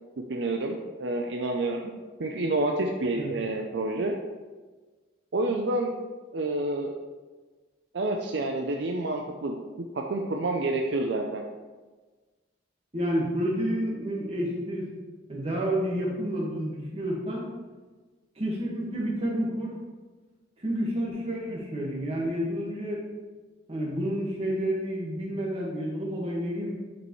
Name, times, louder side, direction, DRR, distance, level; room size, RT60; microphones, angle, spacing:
voice 1, 0.3-1.9 2.2-4.2 5.3-5.9 6.3-7.0 7.9-9.6 9.9-11.4 21.8-21.9, right 2 dB, 60° right, 2 dB, 0.5 m, -28 dB
voice 2, 12.9-14.9 15.3-17.5 18.4-19.7 20.6-23.0 23.7-26.7, equal, 30° right, -3 dB, 1.6 m, -29 dB
9.5 x 5.2 x 3.1 m, 1.3 s
head